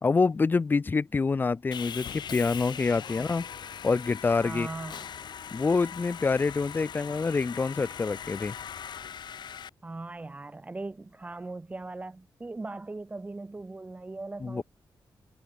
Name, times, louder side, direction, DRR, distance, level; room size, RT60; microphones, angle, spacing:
voice 1, 0.0-3.5 3.8-4.7 5.5-8.5 14.4-14.6, left 4 dB, 25° left, 0.5 m, -26 dB
Sawing, 1.7-9.7, left 8 dB, 65° left, 5.6 m, -40 dB
voice 2, 4.4-5.1 9.8-14.6, right 2 dB, 20° right, 2.3 m, -39 dB
wide cardioid pair, 170°, 8 cm